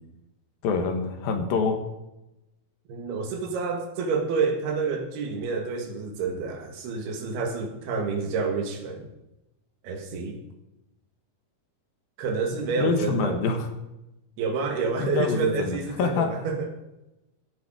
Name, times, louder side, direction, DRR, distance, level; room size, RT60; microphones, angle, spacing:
voice 1, 0.6-1.8 12.8-13.7 15.0-16.3, left 5 dB, 75° left, 5 dB, 3.2 m, -26 dB
voice 2, 2.9-9.1 9.8-10.4 12.2-13.4 14.4-16.7, right 5 dB, 85° right, 5 dB, 3.7 m, -28 dB
15.0 x 9.7 x 5.1 m, 0.94 s
omnidirectional pair, 4.5 m